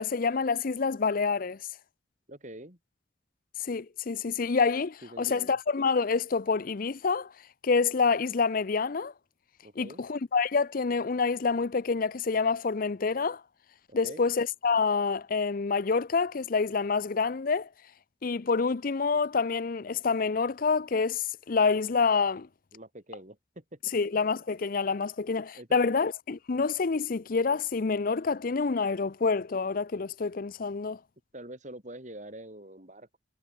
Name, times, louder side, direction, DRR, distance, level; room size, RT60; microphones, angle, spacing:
voice 1, 0.0-1.6 3.6-7.3 7.6-9.1 9.8-13.4 13.9-17.7 18.2-22.5 23.9-31.0, left 4 dB, 50° left, 0.5 m, -27 dB
voice 2, 2.3-2.8 5.0-5.6 9.6-10.0 13.9-14.2 22.7-24.0 25.5-26.0 31.3-33.2, right 1 dB, 40° right, 7.5 m, -45 dB
head